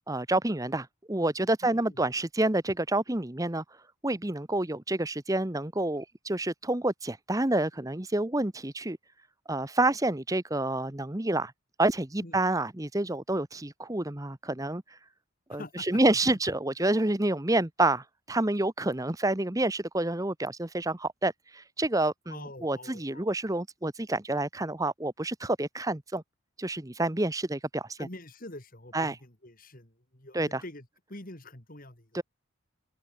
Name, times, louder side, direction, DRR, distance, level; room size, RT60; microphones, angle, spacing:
voice 1, 0.1-3.6 4.0-9.0 9.5-11.5 11.8-14.8 15.5-26.2 26.6-28.0 28.9-29.2 30.3-30.6 32.1-32.2, right 2 dB, 15° right, 1.0 m, -28 dB
voice 2, 1.6-2.0 12.2-12.4 15.5-16.0 22.3-23.3 28.0-32.1, left 1 dB, 40° left, 3.0 m, -46 dB
open air
head